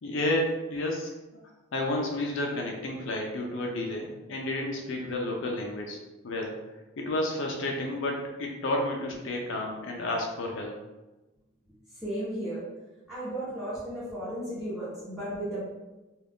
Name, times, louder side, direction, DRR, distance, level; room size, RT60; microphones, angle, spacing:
voice 1, 0.0-1.1 1.7-6.0 6.2-6.5 7.0-10.8, left 1 dB, 65° left, 0 dB, 0.4 m, -31 dB
voice 2, 12.0-12.6 13.1-15.6, right 1 dB, 5° right, -11 dB, 0.9 m, -34 dB
2.4 x 2.3 x 3.4 m, 1.1 s
head